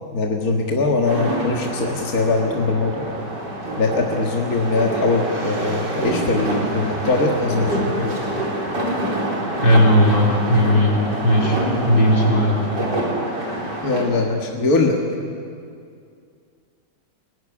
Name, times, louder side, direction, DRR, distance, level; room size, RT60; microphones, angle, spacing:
voice 1, 0.1-3.1 3.8-8.2 13.8-15.0, left 3 dB, 55° left, 1 dB, 2.2 m, -21 dB
sound 1, 1.1-14.0, right 1 dB, 80° right, 4.8 m, -26 dB
voice 2, 9.6-11.0 11.2-11.6 11.9-12.6, equal, 85° left, -2 dB, 4.8 m, -16 dB
23.0 x 19.5 x 9.9 m, 2.3 s
omnidirectional pair, 1.9 m